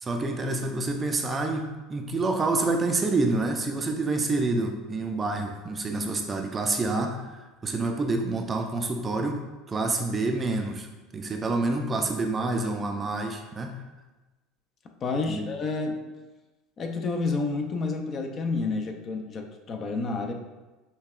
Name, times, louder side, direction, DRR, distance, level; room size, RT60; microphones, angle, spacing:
voice 1, 0.0-10.9 11.1-13.8 15.3-15.5, right 2 dB, 25° right, 4 dB, 0.4 m, -28 dB
voice 2, 15.0-16.0 16.8-20.3, left 3 dB, 35° left, 3 dB, 0.4 m, -29 dB
5.3 x 2.1 x 2.4 m, 1.1 s
supercardioid pair, 105°, 0 cm